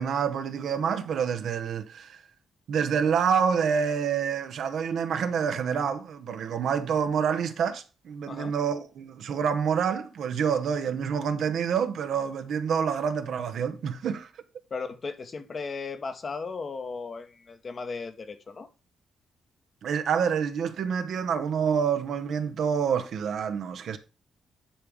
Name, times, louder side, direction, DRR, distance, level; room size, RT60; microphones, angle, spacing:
voice 1, 0.0-2.2 2.7-14.3 19.8-24.0, right 7 dB, 70° right, 0.8 m, -27 dB
voice 2, 14.7-18.7, left 4 dB, 50° left, 1.2 m, -36 dB
10.0 x 3.6 x 5.0 m
hypercardioid pair, 45°, 0 cm